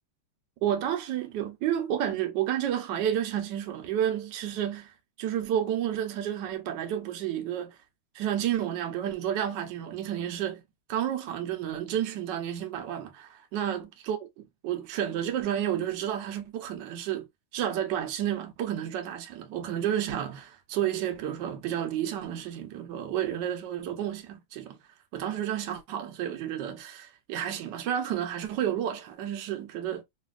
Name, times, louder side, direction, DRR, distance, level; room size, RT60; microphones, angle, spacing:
voice 1, 0.6-4.9 5.2-7.8 8.1-10.6 10.9-14.2 14.6-17.3 17.5-24.8 25.1-30.0, right 10 dB, 70° right, 1.2 m, -31 dB
3.2 x 2.7 x 2.3 m
omnidirectional pair, 2.2 m